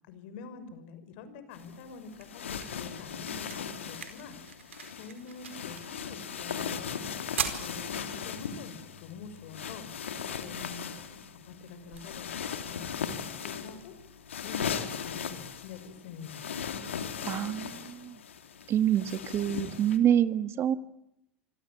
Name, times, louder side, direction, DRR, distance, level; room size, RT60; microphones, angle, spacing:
voice 1, 0.1-7.0 7.6-7.8 8.1-9.9 10.3-10.9 11.5-13.9 14.3-16.8, left 5 dB, 65° left, 12 dB, 6.1 m, -46 dB
sound 1, 1.5-20.0, left 7 dB, 90° left, 2.9 m, -38 dB
sound 2, 1.6-13.6, right 8 dB, 85° right, 4.5 m, -44 dB
voice 2, 17.2-18.2 18.7-20.7, right 10 dB, 40° right, 12 dB, 2.0 m, -27 dB
27.5 x 25.0 x 8.8 m, 0.87 s
hypercardioid pair, 90°, 7 cm